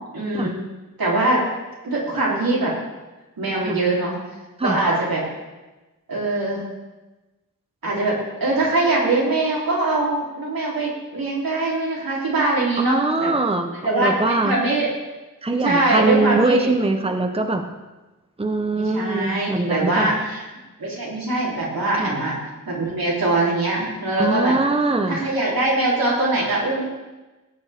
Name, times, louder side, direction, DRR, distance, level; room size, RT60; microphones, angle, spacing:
voice 1, 0.1-0.6 1.0-1.4 1.8-2.7 3.4-4.1 4.6-5.3 6.1-6.6 7.8-13.3 13.8-14.9 15.6-16.7 18.7-20.4 20.8-22.4 22.7-24.6 25.1-26.8, right 2 dB, 90° right, -5 dB, 3.4 m, -22 dB
voice 2, 12.8-14.6 15.4-17.6 18.4-20.1 21.9-22.1 24.2-25.2, right 2 dB, 15° right, 5 dB, 0.8 m, -22 dB
17.5 x 8.1 x 3.5 m, 1.1 s
wide cardioid pair, 80°, 34 cm